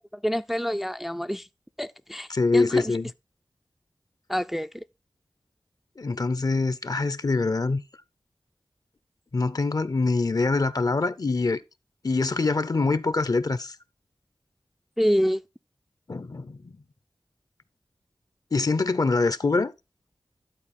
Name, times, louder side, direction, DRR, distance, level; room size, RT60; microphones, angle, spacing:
voice 1, 0.1-1.5 1.8-2.3 2.5-2.9 4.3-4.8 15.0-15.4, equal, ahead, 0.3 m, -26 dB
voice 2, 2.3-3.1 6.0-7.8 9.3-11.6 12.0-13.8 16.1-16.7 18.5-19.7, left 3 dB, 50° left, 0.6 m, -24 dB
11.5 x 4.1 x 4.1 m
cardioid pair, 45°, 8 cm